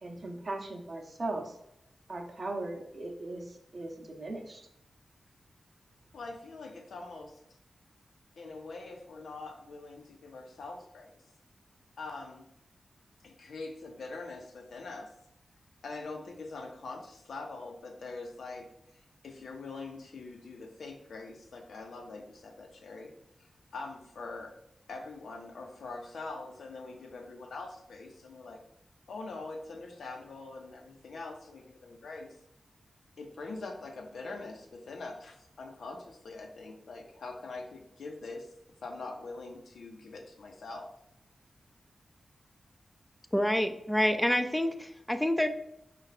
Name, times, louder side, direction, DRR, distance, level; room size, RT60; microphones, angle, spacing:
voice 1, 0.0-1.6 2.1-4.7, right 2 dB, 40° right, 2 dB, 0.7 m, -38 dB
voice 2, 6.1-7.4 8.4-11.2 12.0-12.4 13.2-15.1 15.8-18.7 19.2-23.1 23.4-24.6 24.9-28.6 29.1-32.4 33.2-38.5 38.8-40.9, left 3 dB, 85° left, 3 dB, 0.8 m, -43 dB
voice 3, 43.3-45.5, left 1 dB, 5° left, 8 dB, 0.4 m, -27 dB
5.4 x 2.4 x 4.0 m, 0.81 s
wide cardioid pair, 145°, 0 cm